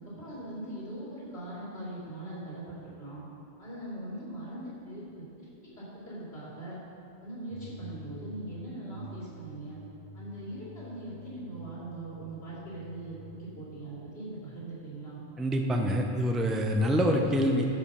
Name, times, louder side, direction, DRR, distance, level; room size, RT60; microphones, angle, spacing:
voice 1, 0.0-3.2 3.6-6.8 7.2-9.8 10.1-15.2, right 1 dB, 70° left, -8 dB, 3.2 m, -41 dB
sound 1, 7.5-13.5, left 1 dB, 40° right, 1.5 m, -48 dB
voice 2, 15.4-17.7, equal, ahead, 2 dB, 0.5 m, -26 dB
13.5 x 5.3 x 5.5 m, 2.6 s
omnidirectional pair, 1.1 m